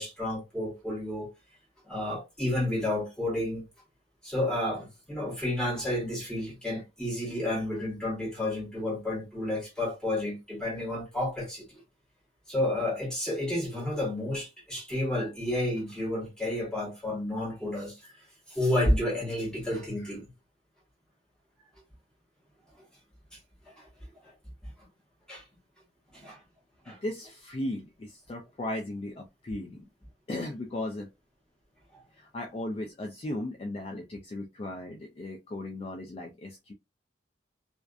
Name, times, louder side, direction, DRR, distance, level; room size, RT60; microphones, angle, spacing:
voice 1, 0.0-1.3 1.9-3.6 4.2-11.8 12.5-20.3 22.7-22.8 23.3-23.4 23.6-23.9 24.2-24.3 24.6-24.7 25.3-25.4 26.1-26.4 26.8-27.0 31.9-32.0, left 1 dB, 5° left, 1.1 m, -31 dB
voice 2, 26.9-29.8 30.3-31.1 32.1-36.7, left 1 dB, 30° left, 0.3 m, -36 dB
2.4 x 2.3 x 2.3 m
head